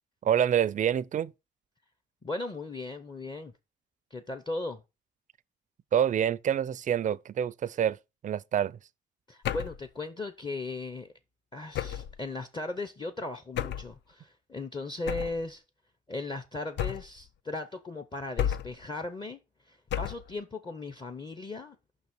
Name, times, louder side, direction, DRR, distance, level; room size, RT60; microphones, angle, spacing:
voice 1, 0.2-1.3 5.9-8.0 8.2-8.8, right 9 dB, 40° right, 0.4 m, -27 dB
voice 2, 2.2-3.5 4.1-4.8 9.3-11.1 11.5-15.6 16.1-19.4 19.7-21.8, left 2 dB, 25° left, 0.7 m, -37 dB
sound 1, 9.4-9.8 11.7-12.2 13.5-13.9 15.1-15.4 16.8-17.2 18.4-18.8 19.9-20.3, left 10 dB, 65° left, 0.5 m, -32 dB
5.6 x 4.0 x 6.0 m
cardioid pair, 90°, 20 cm